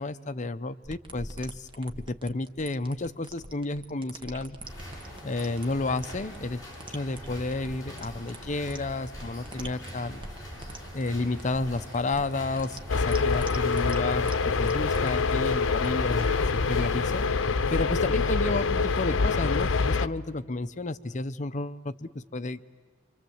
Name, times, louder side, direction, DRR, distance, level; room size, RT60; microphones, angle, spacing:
voice 1, 0.0-4.6 5.2-6.6 6.9-10.2 10.9-16.3 16.5-17.3 17.7-22.7, left 2 dB, 40° left, 11 dB, 0.7 m, -31 dB
sound 1, 0.8-17.0, right 1 dB, 25° right, 1.3 m, -44 dB
sound 2, 4.6-17.3, equal, 20° left, 7.2 m, -43 dB
sound 3, 12.9-20.1, left 4 dB, 80° left, 0.7 m, -25 dB
28.5 x 25.5 x 7.9 m, 1.5 s
head